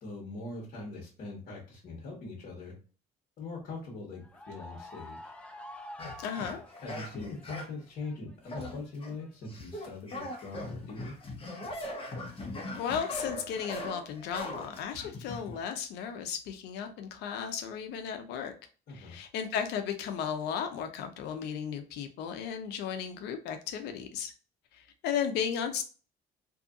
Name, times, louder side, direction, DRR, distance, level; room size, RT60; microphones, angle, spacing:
voice 1, 0.0-2.7 3.4-5.3 6.8-11.1 18.9-19.2, left 3 dB, 55° left, -3 dB, 1.1 m, -42 dB
sound 1, 4.1-7.7 8.0-9.8 10.2-11.1 11.8-12.1, left 1 dB, 5° left, 0.4 m, -49 dB
sound 2, 6.0-7.8 8.5-9.1 9.5-15.6, left 1 dB, 30° left, 0.9 m, -40 dB
voice 2, 6.2-6.6 12.7-18.5 18.9-24.3 24.7-25.8, left 8 dB, 80° left, 7 dB, 0.5 m, -35 dB
2.7 x 2.5 x 2.4 m, 0.37 s
cardioid pair, 110°, 17 cm